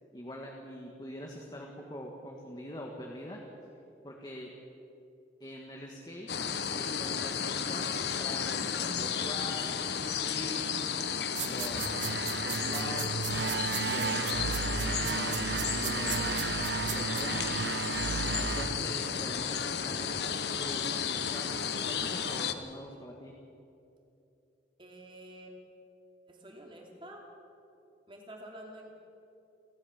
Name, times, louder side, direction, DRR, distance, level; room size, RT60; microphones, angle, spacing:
voice 1, 0.1-3.4 4.0-4.5 5.4-6.3 6.7-8.6 8.9-10.8 11.4-12.0 12.4-13.3 13.9-16.5 16.9-17.8 18.3-23.3, left 1 dB, 25° left, 0 dB, 1.7 m, -43 dB
sound 1, 6.3-22.5, left 7 dB, 65° left, 1.1 m, -33 dB
sound 2, 11.3-17.2, right 14 dB, 90° right, 1.1 m, -39 dB
sound 3, 11.6-19.6, right 5 dB, 65° right, 0.5 m, -34 dB
voice 2, 24.8-25.5 26.3-27.3 28.1-28.9, right 1 dB, 30° right, 1 dB, 2.9 m, -48 dB
29.5 x 12.5 x 7.2 m, 2.7 s
head